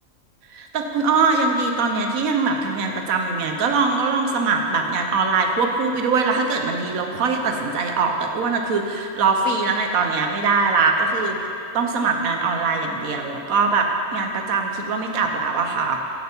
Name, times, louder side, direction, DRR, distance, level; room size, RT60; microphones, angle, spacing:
voice 1, 0.5-11.4 11.7-16.0, right 4 dB, 85° right, 3 dB, 1.3 m, -22 dB
13.5 x 6.8 x 4.5 m, 2.9 s
omnidirectional pair, 1.4 m